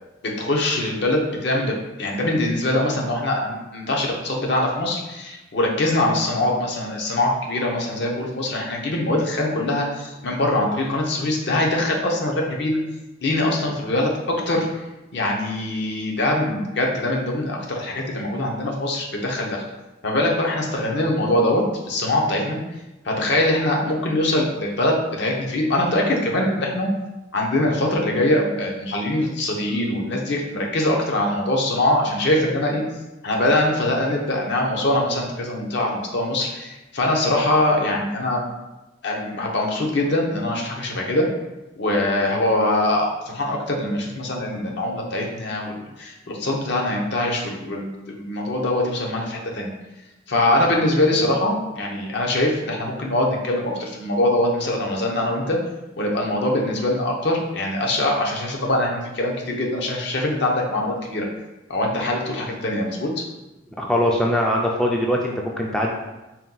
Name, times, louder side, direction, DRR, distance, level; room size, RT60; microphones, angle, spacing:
voice 1, 0.2-1.7 2.0-12.8 13.2-14.7 15.1-19.6 20.0-22.6 23.0-26.9 27.3-32.8 33.2-38.4 39.0-41.3 41.8-49.7 50.3-55.6 56.0-61.3 61.7-63.2, left 1 dB, 60° left, 0 dB, 0.7 m, -23 dB
voice 2, 63.8-66.0, left 1 dB, 5° left, -2 dB, 0.3 m, -21 dB
4.2 x 2.2 x 3.8 m, 1.0 s
head